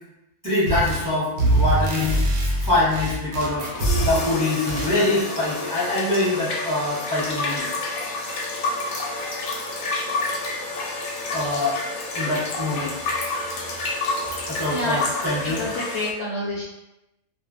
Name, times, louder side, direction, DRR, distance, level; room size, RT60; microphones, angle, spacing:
voice 1, 0.4-3.7 4.0-7.7 11.3-11.8 12.1-13.0 14.5-15.6, left 2 dB, 15° right, -11 dB, 0.7 m, -24 dB
sound 1, 0.7-1.1 1.4-4.3 4.7-5.0, right 1 dB, 85° right, 1.0 m, -23 dB
sound 2, 3.7-16.1, left 2 dB, 85° left, 1.0 m, -29 dB
voice 2, 14.7-15.0 15.4-16.6, left 1 dB, 65° left, -6 dB, 0.7 m, -28 dB
2.5 x 2.1 x 2.4 m, 0.94 s
omnidirectional pair, 1.5 m